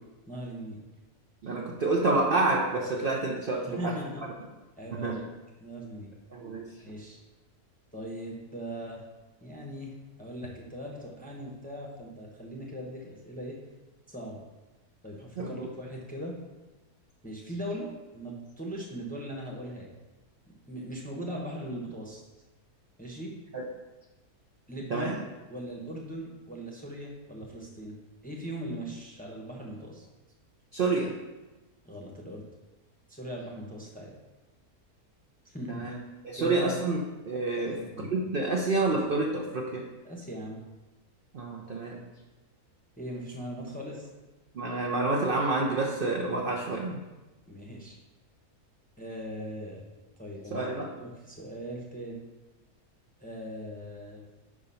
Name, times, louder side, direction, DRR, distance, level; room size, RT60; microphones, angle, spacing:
voice 1, 0.3-0.8 3.5-4.3 4.8-5.3 5.6-6.1 6.8-7.2 7.9-9.0 9.4-9.9 10.2-13.6 14.1-14.4 15.0-16.3 17.2-19.9 20.7-22.2 23.0-23.3 24.7-25.2 25.5-28.0 28.2-30.1 31.8-32.4 33.1-34.1 35.4-35.8 36.4-36.7 37.6-38.1 40.0-40.6 43.0-44.1 47.5-48.0 49.0-49.8 50.2-50.7 50.9-52.2 53.2-54.3, equal, 5° left, -2 dB, 0.8 m, -39 dB
voice 2, 1.4-4.0 4.9-5.2 6.3-6.7 15.4-15.7 23.5-23.6 24.9-25.1 30.7-31.1 35.7-37.0 37.2-37.8 38.1-39.8 41.3-42.0 44.5-47.0 50.5-50.9, right 3 dB, 50° right, 0 dB, 0.6 m, -28 dB
5.2 x 4.9 x 5.5 m, 1.1 s
omnidirectional pair, 1.7 m